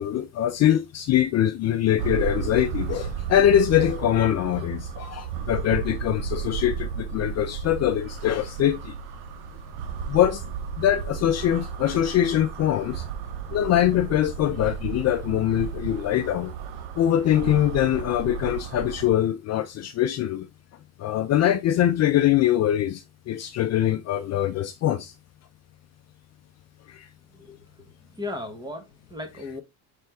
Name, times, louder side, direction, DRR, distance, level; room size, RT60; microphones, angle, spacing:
voice 1, 0.0-8.9 10.1-10.4 10.8-13.0 13.5-16.5 17.0-20.5 21.0-25.1 26.9-27.1, left 11 dB, 45° left, 0.4 m, -23 dB
sound 1, 2.0-19.1, right 7 dB, 85° right, 0.8 m, -34 dB
voice 2, 28.1-29.6, left 2 dB, 10° right, 1.0 m, -36 dB
4.4 x 3.4 x 3.3 m
cardioid pair, 130°, 39 cm